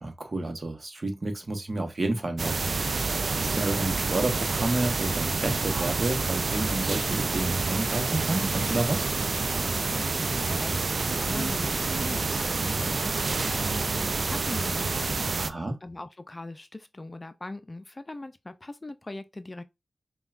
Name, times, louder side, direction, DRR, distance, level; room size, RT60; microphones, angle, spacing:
voice 1, 0.0-2.7 3.4-9.1 15.4-15.8, right 2 dB, 45° right, 1.0 m, -30 dB
sound 1, 2.4-15.5, right 4 dB, 65° right, 0.3 m, -28 dB
Engine / Mechanisms, 6.2-15.0, right 1 dB, 20° right, 2.3 m, -41 dB
voice 2, 9.7-15.5 15.8-19.6, left 2 dB, 30° left, 0.4 m, -40 dB
5.4 x 2.3 x 2.4 m
wide cardioid pair, 65°, 0 cm